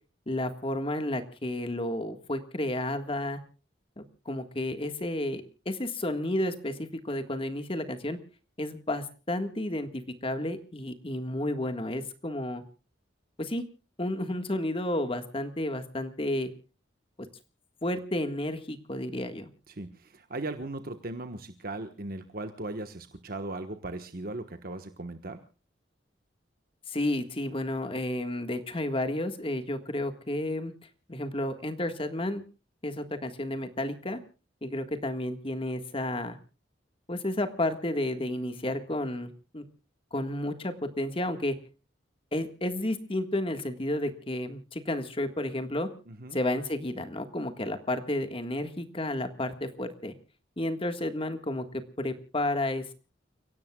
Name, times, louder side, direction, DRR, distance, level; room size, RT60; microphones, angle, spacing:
voice 1, 0.3-3.4 4.0-8.2 8.6-12.6 13.4-13.6 14.0-16.5 17.8-19.5 26.9-30.7 31.1-32.4 32.8-34.2 34.6-36.4 37.1-39.6 40.1-41.5 42.3-45.9 46.3-50.1 50.6-52.9, left 1 dB, 30° left, 8 dB, 1.6 m, -31 dB
voice 2, 19.7-25.4 46.1-46.4, right 2 dB, 50° right, 7 dB, 1.3 m, -38 dB
30.0 x 17.5 x 2.3 m, 0.36 s
head